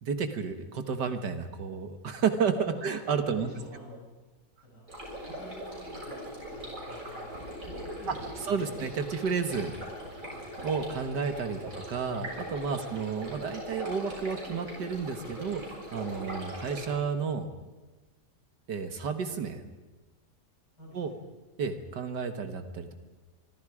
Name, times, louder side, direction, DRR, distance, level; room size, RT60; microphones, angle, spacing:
voice 1, 0.0-3.5 8.1-8.2 8.5-9.7 10.6-15.6 15.9-17.5 18.7-19.6 20.9-21.1 21.6-22.9, right 6 dB, 75° right, 8 dB, 2.0 m, -31 dB
voice 2, 3.3-4.1 4.6-4.8 5.2-8.8 11.5-11.7 12.7-13.0 20.8-21.2, left 1 dB, 75° left, -5 dB, 8.4 m, -48 dB
sound 1, 4.9-16.9, equal, 50° right, 7.4 m, -40 dB
26.0 x 23.5 x 5.0 m, 1.2 s
omnidirectional pair, 1.8 m